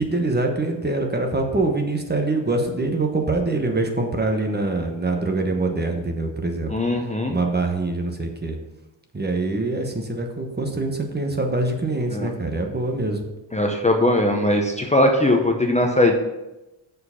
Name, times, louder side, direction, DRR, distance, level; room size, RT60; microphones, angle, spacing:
voice 1, 0.0-6.7 7.3-8.6 9.1-13.2, right 2 dB, 20° right, 4 dB, 1.0 m, -24 dB
voice 2, 6.7-7.3 12.1-12.3 13.5-16.1, left 1 dB, 15° left, 2 dB, 0.7 m, -20 dB
6.5 x 4.7 x 5.7 m, 0.98 s
wide cardioid pair, 105°, 44 cm